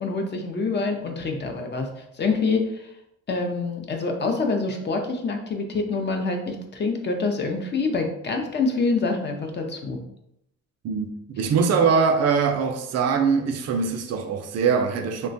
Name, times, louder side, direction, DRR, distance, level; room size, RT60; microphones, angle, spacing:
voice 1, 0.0-2.9 3.3-10.0, left 3 dB, 35° left, 0.5 m, -26 dB
voice 2, 10.8-15.3, right 5 dB, 60° right, 0.4 m, -22 dB
3.0 x 2.2 x 2.5 m
cardioid pair, 90°, 30 cm